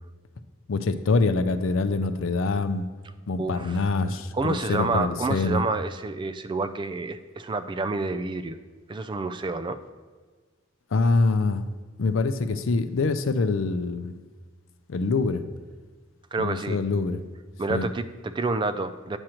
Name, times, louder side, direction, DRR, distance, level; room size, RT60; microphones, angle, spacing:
voice 1, 0.7-2.9 3.3-5.6 10.9-11.7 12.0-14.1 14.9-15.5 16.4-17.2 17.7-17.9, left 3 dB, 80° left, 11 dB, 0.5 m, -25 dB
voice 2, 3.4-3.8 4.3-8.6 8.9-9.8 16.3-16.8 17.6-19.2, right 3 dB, 25° right, 11 dB, 0.3 m, -28 dB
8.8 x 6.3 x 2.9 m, 1.4 s
head